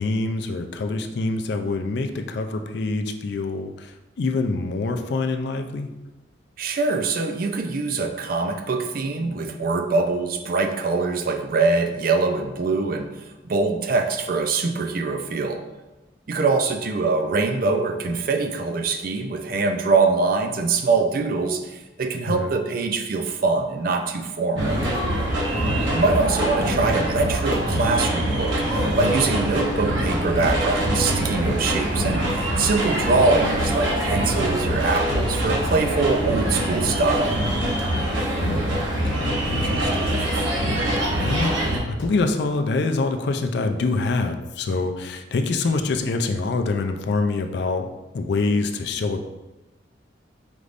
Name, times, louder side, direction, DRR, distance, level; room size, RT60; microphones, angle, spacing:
voice 1, 0.0-5.9 9.2-9.4 22.2-22.5 25.8-26.0 38.4-40.7 41.1-49.2, left 3 dB, 60° left, 6 dB, 0.4 m, -26 dB
voice 2, 6.6-13.1 13.4-15.6 16.3-24.8 25.9-37.4, right 3 dB, 50° right, 5 dB, 0.4 m, -23 dB
sound 1, 24.6-41.8, right 1 dB, 90° right, 0.9 m, -24 dB
sound 2, 30.4-30.8 32.6-33.0 35.1-35.5 37.8-38.0 39.9-40.2 42.0-42.3, left 1 dB, 80° left, 0.8 m, -33 dB
5.1 x 3.3 x 2.5 m, 1.0 s
head